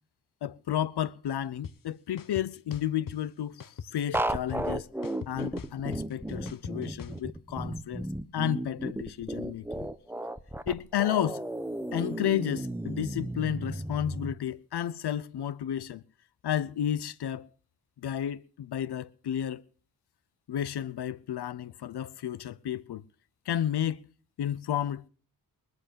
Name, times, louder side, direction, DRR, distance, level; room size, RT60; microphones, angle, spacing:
voice 1, 0.4-4.9 5.3-8.1 8.3-9.9 10.7-11.4 11.9-16.0 16.4-17.5 18.0-19.6 20.5-23.0 23.5-24.0 24.4-25.1, left 10 dB, 85° left, 0.7 m, -32 dB
sound 1, 1.6-1.7 2.2-3.2 3.6-4.7 5.0-7.2, left 7 dB, 55° left, 1.0 m, -41 dB
sound 2, 4.1-14.3, right 1 dB, 5° right, 0.8 m, -34 dB
23.0 x 8.0 x 6.8 m
wide cardioid pair, 110°, 39 cm